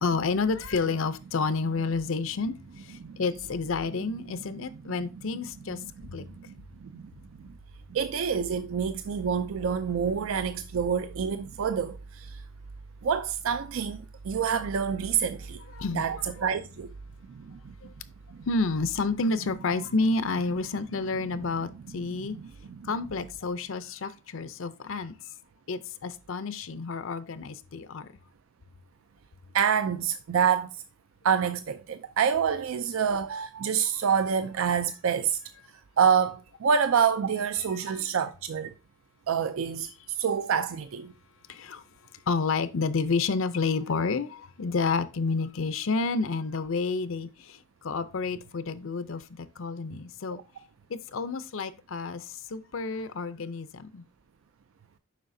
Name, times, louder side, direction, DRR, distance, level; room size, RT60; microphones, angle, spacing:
voice 1, 0.0-5.8 6.1-6.2 15.7-16.0 18.5-22.4 22.8-25.1 25.7-28.1 37.9-38.0 41.5-41.8 42.3-50.4 50.9-54.0, left 4 dB, 70° left, 0.6 m, -30 dB
voice 2, 6.2-6.5 6.8-7.0 7.4-7.5 7.9-12.4 13.0-15.6 15.9-16.9 17.3-17.7 18.3-18.4 22.1-22.4 22.7-22.8 29.5-30.7 31.2-35.4 36.0-38.7 39.3-41.1, right 7 dB, 75° right, 0.4 m, -27 dB
7.4 x 5.6 x 2.6 m
head